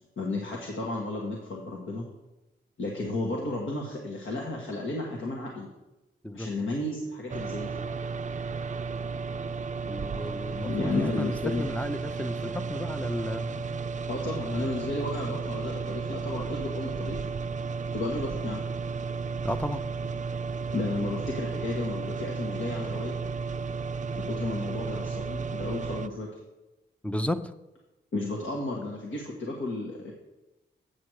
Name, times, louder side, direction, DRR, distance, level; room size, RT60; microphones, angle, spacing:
voice 1, 0.2-2.0 2.8-5.7 6.3-7.8 10.6-11.7 14.1-17.2 17.9-18.6 20.7-23.2 24.2-26.3 28.1-30.1, left 2 dB, 75° left, -1 dB, 1.4 m, -33 dB
sound 1, 7.3-26.1, right 5 dB, 40° right, 0.4 m, -33 dB
voice 2, 9.9-13.7 19.4-19.8 27.0-27.5, left 1 dB, 5° left, 11 dB, 0.6 m, -33 dB
8.4 x 6.1 x 4.7 m, 1.0 s
cardioid pair, 60°, 20 cm